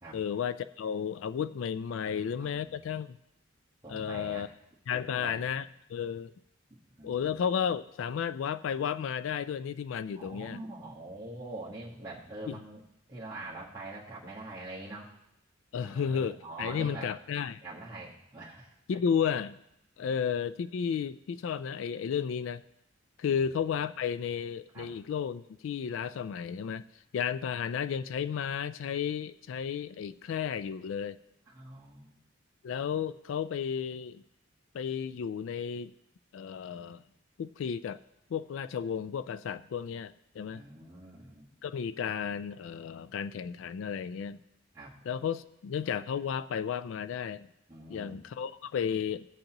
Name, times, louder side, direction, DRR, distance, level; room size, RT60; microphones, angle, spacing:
voice 1, 0.1-3.2 3.9-4.5 4.9-6.3 7.0-10.6 12.5-12.6 15.7-17.6 18.9-19.6 20.0-22.6 23.2-26.8 27.1-31.2 32.6-34.2 34.7-35.9 36.3-37.0 37.4-38.0 38.3-40.6 41.6-44.4 45.1-47.5 47.9-49.3, left 7 dB, 70° left, 15 dB, 0.3 m, -33 dB
voice 2, 2.0-2.8 3.8-4.5 4.9-5.4 7.0-7.3 10.1-12.8 13.1-15.1 15.8-17.1 17.6-18.7 23.3-23.5 24.7-24.9 31.5-32.1 40.5-41.5 44.7-45.0 47.7-48.2, right 2 dB, 20° right, -10 dB, 1.4 m, -44 dB
16.5 x 7.9 x 2.9 m, 0.83 s
head